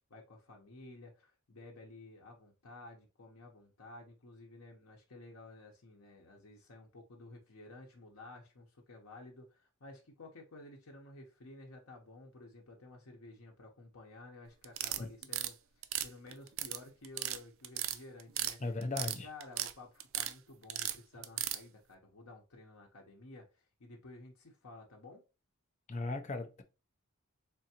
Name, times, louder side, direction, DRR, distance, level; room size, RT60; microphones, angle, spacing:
voice 1, 0.0-15.6 16.0-18.6 19.0-25.2, left 2 dB, 80° left, 0.8 m, -53 dB
sound 1, 14.6-15.5 15.8-16.8 17.0-17.4 17.6-18.5 18.8-19.7 20.0-20.3 20.7-21.6, right 13 dB, 65° right, 0.4 m, -35 dB
voice 2, 18.6-19.3 25.9-26.6, left 2 dB, 35° left, 0.6 m, -37 dB
3.8 x 3.4 x 2.9 m
head